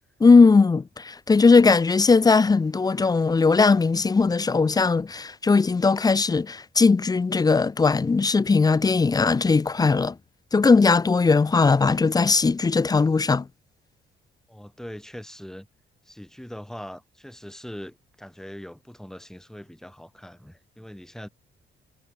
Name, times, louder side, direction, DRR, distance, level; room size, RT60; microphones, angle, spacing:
voice 1, 0.2-10.1 10.5-13.4, left 4 dB, 20° left, 0.5 m, -19 dB
voice 2, 14.5-15.7 16.0-21.3, equal, ahead, 3.5 m, -41 dB
cardioid pair, 90°, 20 cm